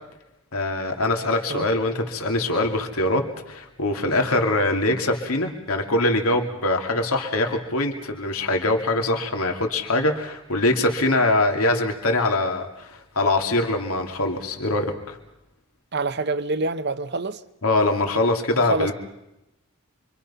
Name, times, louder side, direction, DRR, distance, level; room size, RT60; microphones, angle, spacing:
voice 1, 0.5-15.2 17.6-18.9, left 2 dB, 80° left, 2.6 m, -23 dB
voice 2, 15.9-17.4 18.7-18.9, right 3 dB, 50° right, 0.8 m, -26 dB
28.0 x 24.5 x 5.7 m
head